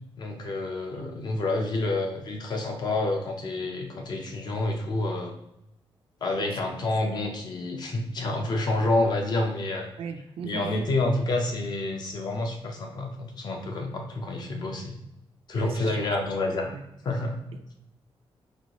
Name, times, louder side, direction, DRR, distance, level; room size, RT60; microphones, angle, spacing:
voice 1, 0.2-5.3 6.2-9.9 10.4-15.0 15.5-16.8 17.0-17.4, left 2 dB, 50° left, 3 dB, 0.6 m, -28 dB
voice 2, 10.0-10.9 15.5-16.0 16.7-16.9 17.5-17.7, right 6 dB, 85° right, 7 dB, 0.4 m, -37 dB
4.2 x 2.4 x 3.0 m, 0.83 s
wide cardioid pair, 180°, 9 cm